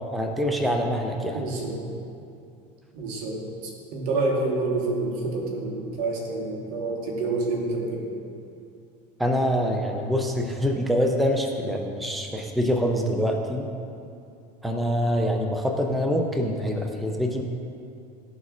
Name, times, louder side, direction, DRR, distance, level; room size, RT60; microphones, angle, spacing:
voice 1, 0.1-1.4 9.2-13.7 14.6-17.4, equal, ahead, 3 dB, 0.5 m, -25 dB
voice 2, 1.3-1.8 2.9-8.0, right 2 dB, 75° right, -1 dB, 1.4 m, -28 dB
12.0 x 4.1 x 2.4 m, 2.5 s
supercardioid pair, 95°, 21 cm